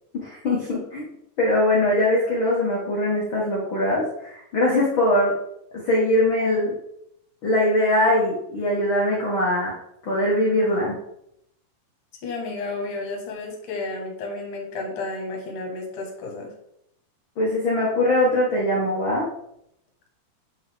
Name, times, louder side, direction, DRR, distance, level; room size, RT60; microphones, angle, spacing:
voice 1, 0.1-1.1 1.4-5.3 5.7-6.7 7.4-9.7 10.0-11.0 17.4-19.3, left 1 dB, 75° left, -4 dB, 1.1 m, -22 dB
voice 2, 12.2-16.5, left 3 dB, 55° left, 0 dB, 2.9 m, -32 dB
9.0 x 5.5 x 3.6 m, 0.76 s
omnidirectional pair, 4.8 m